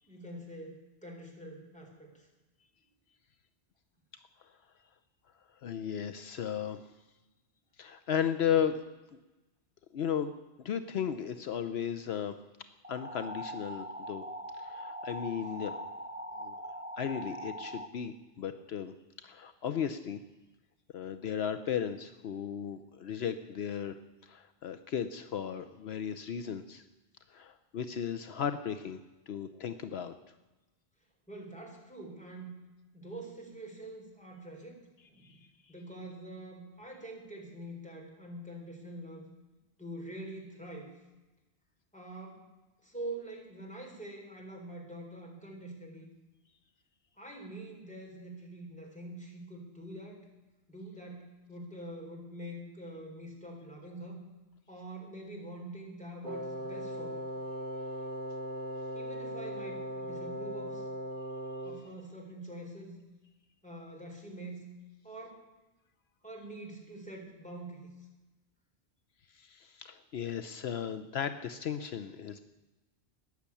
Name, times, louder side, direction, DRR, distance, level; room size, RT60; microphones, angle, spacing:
voice 1, 0.0-2.3 31.3-32.5 32.9-35.4 35.7-39.3 39.8-40.9 41.9-42.4 42.8-46.1 47.2-50.2 50.7-54.2 54.7-57.3 58.9-60.9 61.6-63.0 63.6-64.6 65.0-65.5 66.2-67.9, right 1 dB, 5° left, -1 dB, 3.9 m, -45 dB
voice 2, 5.6-6.9 7.8-8.8 9.1-9.2 9.9-10.3 10.6-12.4 12.9-14.2 14.6-15.9 16.4-16.6 17.0-20.2 20.9-26.8 27.3-30.1 35.2-35.7 69.3-72.4, left 8 dB, 70° left, 10 dB, 1.0 m, -35 dB
sound 1, 12.8-17.9, equal, 10° right, 0.9 m, -42 dB
Wind instrument woodwind instrument, 56.2-62.0, equal, 70° right, 1.9 m, -39 dB
14.5 x 10.0 x 8.4 m, 1.1 s
omnidirectional pair, 1.1 m